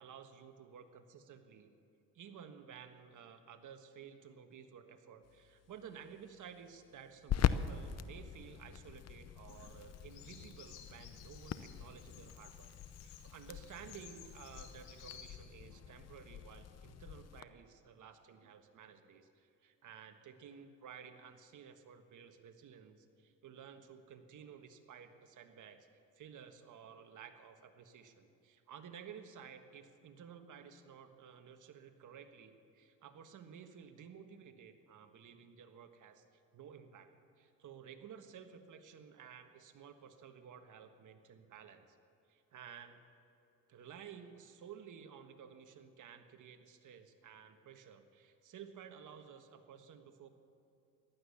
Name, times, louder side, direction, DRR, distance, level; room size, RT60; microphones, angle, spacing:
voice 1, 0.0-1.7 2.1-12.7 13.0-25.9 26.1-36.2 36.5-37.1 37.4-42.0 42.3-43.0 43.7-50.3, right 7 dB, 55° right, 7 dB, 1.5 m, -54 dB
sound 1, 5.2-17.4, left 9 dB, 45° left, 0.7 m, -42 dB
Bird vocalization bird call bird song, 9.5-15.3, left 8 dB, 90° left, 1.9 m, -57 dB
15.0 x 12.0 x 7.0 m, 2.7 s
cardioid pair, 85°, 36 cm